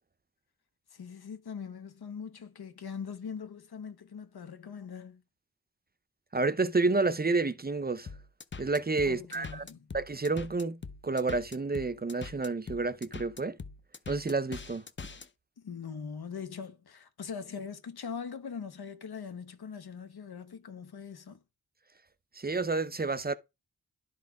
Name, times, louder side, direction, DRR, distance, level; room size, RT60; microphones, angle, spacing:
voice 1, 0.9-5.2 9.1-9.8 15.6-21.4, left 6 dB, 90° left, 1.1 m, -41 dB
voice 2, 6.3-8.2 8.6-9.6 9.9-13.6 14.1-14.9 22.3-23.4, right 3 dB, 25° right, 0.5 m, -30 dB
sound 1, 8.1-15.3, left 4 dB, 30° left, 0.6 m, -43 dB
11.5 x 4.1 x 4.7 m
wide cardioid pair, 110°, 37 cm